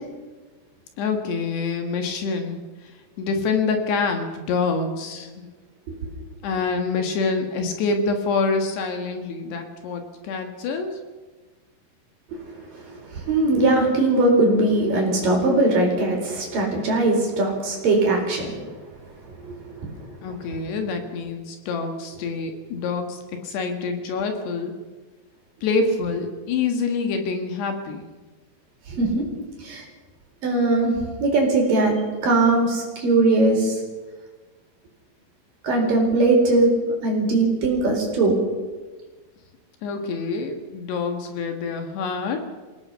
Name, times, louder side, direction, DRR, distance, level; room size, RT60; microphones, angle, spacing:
voice 1, 1.0-5.5 6.4-11.0 20.2-24.7 25.6-28.1 39.8-42.4, left 4 dB, 70° left, 5 dB, 3.5 m, -26 dB
voice 2, 12.7-18.6 19.3-20.1 28.9-29.2 29.6-29.8 30.4-30.9 31.2-31.9 32.2-33.8 35.6-36.7 37.0-38.4, right 2 dB, 45° right, 0 dB, 5.8 m, -20 dB
27.0 x 17.0 x 5.6 m, 1.3 s
omnidirectional pair, 5.4 m